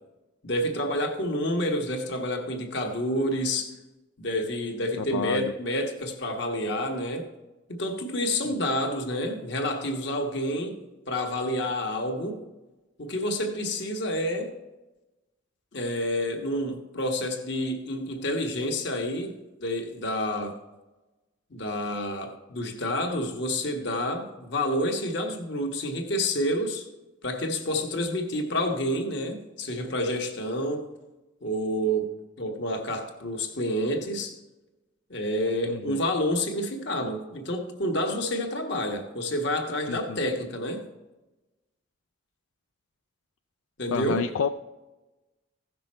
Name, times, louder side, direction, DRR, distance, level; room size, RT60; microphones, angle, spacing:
voice 1, 0.4-3.7 4.2-7.3 7.7-10.8 11.1-12.4 13.0-14.5 15.7-20.5 21.5-26.8 27.2-30.9 31.4-34.4 35.1-40.9 43.8-44.3, left 1 dB, 55° left, 1.3 m, -29 dB
voice 2, 5.0-5.5 8.4-8.5 35.7-36.0 39.9-40.2 43.9-44.5, left 6 dB, 80° left, 0.4 m, -30 dB
15.5 x 6.1 x 4.3 m
head